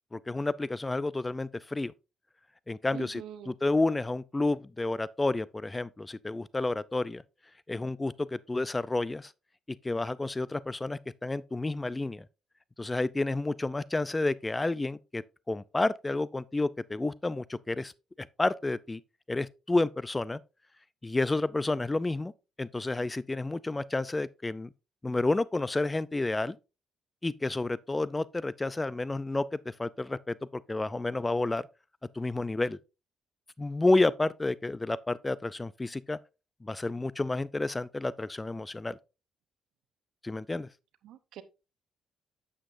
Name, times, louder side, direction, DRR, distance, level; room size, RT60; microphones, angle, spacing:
voice 1, 0.1-1.9 2.7-7.2 7.7-9.3 9.8-12.3 12.8-17.9 18.2-19.0 19.3-20.4 21.0-22.3 22.6-24.7 25.0-26.6 27.2-31.7 32.1-32.8 33.6-36.2 36.6-39.0 40.2-40.7, left 2 dB, 20° left, 0.4 m, -30 dB
voice 2, 2.9-3.5 41.0-41.4, right 10 dB, 80° right, 0.8 m, -44 dB
8.9 x 7.4 x 2.5 m
cardioid pair, 90°, 0 cm